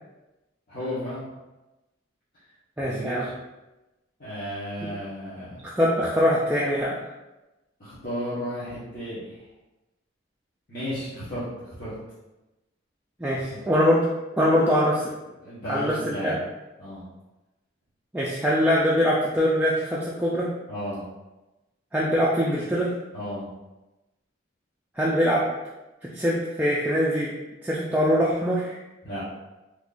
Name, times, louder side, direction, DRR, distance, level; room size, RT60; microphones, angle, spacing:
voice 1, 0.7-1.2 2.8-3.3 4.2-5.6 7.8-9.4 10.7-11.9 13.5-13.6 15.4-16.3 16.8-17.0 20.7-21.0 23.1-23.5 29.0-29.2, equal, 45° left, -12 dB, 1.1 m, -34 dB
voice 2, 2.8-3.3 5.8-7.0 13.2-14.1 14.4-15.1 15.7-16.4 18.1-20.5 21.9-22.9 25.0-25.5 26.0-27.3 27.6-28.7, equal, 10° right, -6 dB, 0.3 m, -23 dB
3.7 x 2.9 x 2.4 m, 1.0 s
head